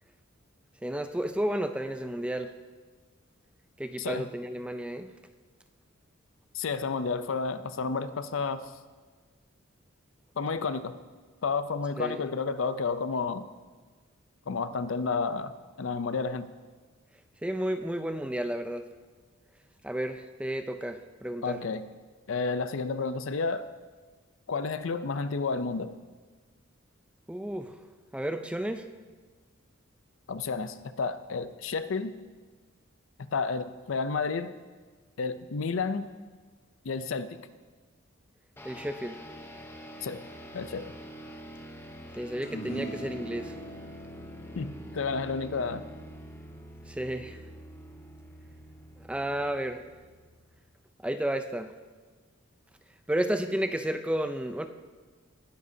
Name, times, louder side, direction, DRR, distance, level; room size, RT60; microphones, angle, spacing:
voice 1, 0.8-2.5 3.8-5.1 12.0-12.3 17.4-18.8 19.8-21.6 27.3-27.7 28.1-28.8 38.6-39.2 42.2-43.6 46.9-47.4 49.1-49.8 51.0-51.7 53.1-54.7, right 1 dB, 5° right, 8 dB, 0.4 m, -32 dB
voice 2, 4.0-4.3 6.5-8.6 10.4-10.9 11.4-13.4 14.5-15.5 15.8-16.5 21.4-21.8 22.3-23.7 24.5-25.9 30.3-32.1 33.3-34.5 35.2-36.1 36.8-37.3 40.0-40.2 40.5-40.8 44.6-45.8, left 4 dB, 65° left, 12 dB, 0.5 m, -31 dB
sound 1, 38.6-50.8, right 1 dB, 10° left, 0.8 m, -46 dB
sound 2, 42.4-49.0, right 1 dB, 50° left, 2.6 m, -44 dB
19.5 x 10.0 x 2.8 m, 1.4 s
head